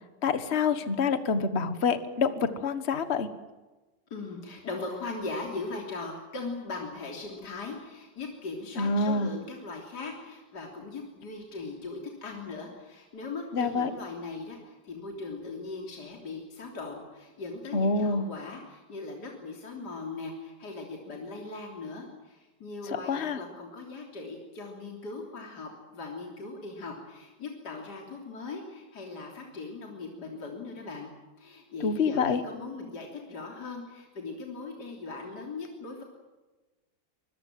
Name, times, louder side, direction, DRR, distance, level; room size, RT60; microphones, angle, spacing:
voice 1, 0.2-3.3 8.8-9.3 13.5-13.9 17.7-18.2 22.9-23.4 31.8-32.4, left 4 dB, 35° left, 11 dB, 1.6 m, -27 dB
voice 2, 4.1-31.1 31.4-36.0, left 3 dB, 60° left, 0 dB, 3.9 m, -39 dB
25.5 x 21.5 x 7.7 m, 1.2 s
omnidirectional pair, 2.0 m